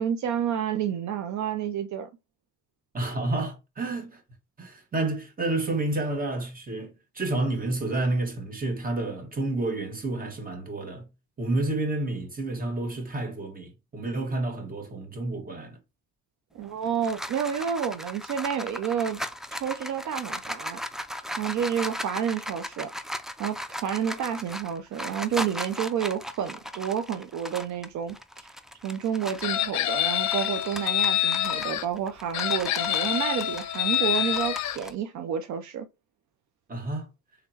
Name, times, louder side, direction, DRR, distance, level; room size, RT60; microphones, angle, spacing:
voice 1, 0.0-2.1 16.5-19.2 19.5-20.8 21.4-22.9 23.4-28.5 28.8-35.9, right 8 dB, 70° right, 0.5 m, -30 dB
voice 2, 2.9-4.2 4.6-11.1 11.4-15.8 36.7-37.1, right 2 dB, 30° right, 1.4 m, -30 dB
sound 1, 16.6-29.6 30.0-34.9, equal, ahead, 0.3 m, -37 dB
Chicken rooster, 29.4-31.8 32.3-34.8, left 12 dB, 65° left, 0.5 m, -26 dB
3.6 x 3.5 x 2.8 m
cardioid pair, 90°, 30 cm